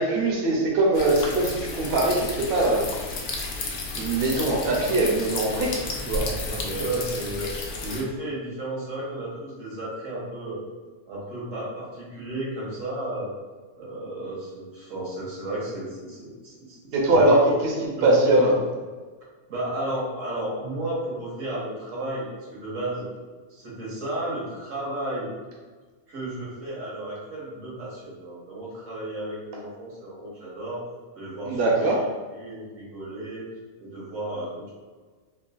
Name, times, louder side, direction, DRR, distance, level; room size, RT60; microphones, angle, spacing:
voice 1, 0.0-2.9 3.9-6.2 16.9-17.4 17.6-17.7 18.0-18.5 31.4-32.0, right 2 dB, 55° right, -3 dB, 0.8 m, -22 dB
sound 1, 0.9-8.0, left 2 dB, 75° left, 0.9 m, -32 dB
voice 2, 6.4-10.6 11.1-13.4 13.8-17.5 18.0-18.5 19.5-23.1 23.5-25.3 26.1-30.8 31.1-31.9 32.3-33.5 33.8-34.7, right 1 dB, 80° right, -6 dB, 1.5 m, -33 dB
3.8 x 2.3 x 2.4 m, 1.4 s
omnidirectional pair, 1.3 m